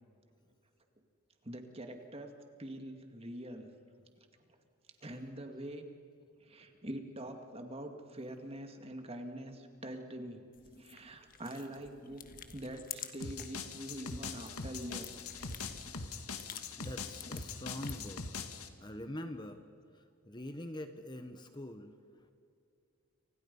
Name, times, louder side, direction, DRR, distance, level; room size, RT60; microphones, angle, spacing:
voice 1, 1.4-2.3 2.6-3.7 4.2-4.3 5.0-5.9 6.4-10.4 10.8-12.2 12.5-15.1 15.4-15.5 15.9-16.4, right 1 dB, 25° right, 5 dB, 2.1 m, -44 dB
sound 1, 10.5-13.6 14.0-18.2, left 8 dB, 40° left, 1.5 m, -50 dB
sound 2, 13.2-18.7, left 4 dB, 80° left, 1.9 m, -42 dB
voice 2, 16.5-18.5 18.8-19.6 19.9-22.3, left 1 dB, 20° left, 8 dB, 1.0 m, -45 dB
30.0 x 26.0 x 5.4 m, 2.5 s
head